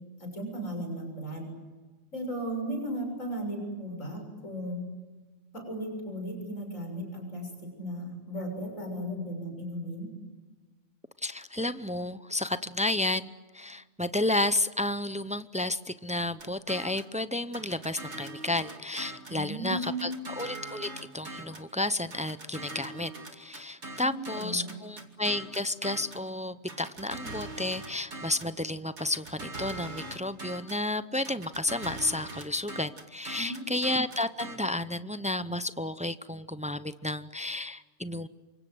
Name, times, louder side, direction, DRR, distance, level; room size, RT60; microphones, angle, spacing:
voice 1, 0.2-1.5 2.1-4.8 5.5-10.1 19.3-20.2 24.0-24.8 33.4-33.8, equal, 75° left, 3 dB, 7.4 m, -36 dB
voice 2, 11.2-38.3, left 2 dB, 10° right, 13 dB, 0.4 m, -32 dB
sound 1, 16.4-17.1 17.5-19.4 19.8-21.7 22.1-26.3 26.7-28.6 29.0-30.9 31.2-34.6, right 2 dB, 55° right, 2.7 m, -42 dB
28.5 x 25.0 x 7.9 m, 1.3 s
omnidirectional pair, 1.4 m